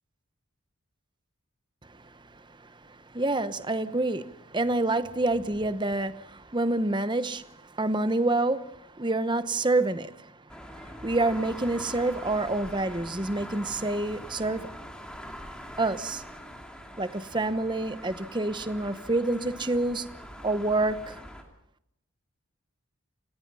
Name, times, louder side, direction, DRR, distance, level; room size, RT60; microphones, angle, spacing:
voice 1, 1.9-10.3 10.7-14.7 15.8-16.2 17.0-20.1 20.4-21.2, right 2 dB, 20° right, 0.9 m, -28 dB
sound 1, 10.5-21.4, equal, 5° left, 2.7 m, -43 dB
29.0 x 17.0 x 5.6 m
head